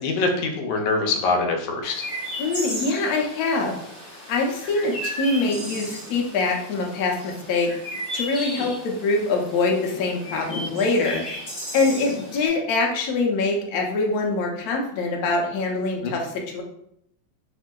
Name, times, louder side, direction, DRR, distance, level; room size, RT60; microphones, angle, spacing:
voice 1, 0.0-2.1 16.0-16.1, left 3 dB, 90° left, 3 dB, 1.3 m, -24 dB
Chirp tweet, 1.8-12.5, equal, 35° left, 1.3 m, -35 dB
voice 2, 2.4-3.8 4.3-7.7 8.1-11.2 11.7-16.6, left 3 dB, 70° left, 1 dB, 1.0 m, -24 dB
3.5 x 2.5 x 2.2 m, 0.73 s
omnidirectional pair, 2.0 m